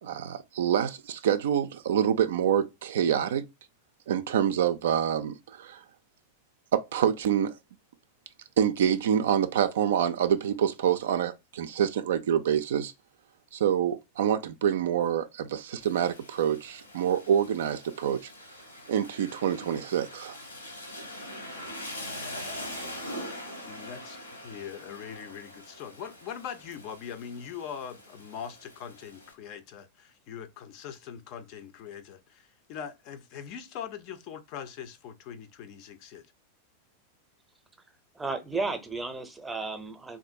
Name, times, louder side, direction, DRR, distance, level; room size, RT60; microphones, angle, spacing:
voice 1, 0.0-3.4 4.1-5.8 6.7-7.5 8.6-12.9 13.5-18.2 18.9-20.4, right 9 dB, 60° right, 0.3 m, -26 dB
Rain, 15.8-29.3, left 1 dB, 80° left, 1.0 m, -43 dB
voice 2, 23.6-24.2 24.4-36.3, left 8 dB, 45° left, 0.5 m, -41 dB
voice 3, 38.1-40.2, right 3 dB, 10° right, 0.6 m, -33 dB
3.6 x 2.6 x 2.5 m
figure-of-eight pair, 90°, 0 cm